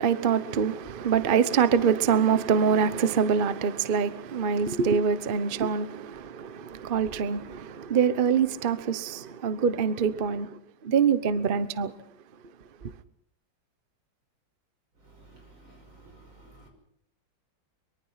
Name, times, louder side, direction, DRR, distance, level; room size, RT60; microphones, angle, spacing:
voice 1, 0.0-10.5 10.8-11.9, right 7 dB, 40° right, 0.8 m, -25 dB
voice 2, 15.6-16.7, right 2 dB, 85° right, 6.6 m, -53 dB
24.0 x 23.0 x 5.7 m
omnidirectional pair, 2.1 m